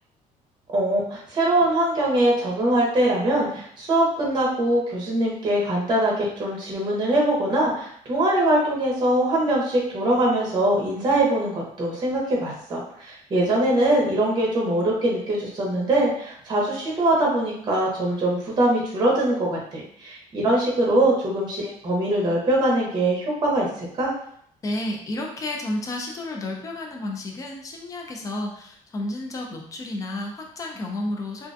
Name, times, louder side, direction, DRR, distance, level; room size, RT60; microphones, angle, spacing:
voice 1, 0.7-24.1, right 1 dB, 30° right, -4 dB, 0.7 m, -22 dB
voice 2, 24.6-31.5, left 1 dB, 25° left, 1 dB, 0.4 m, -31 dB
2.4 x 2.1 x 2.5 m, 0.65 s
cardioid pair, 150°, 14 cm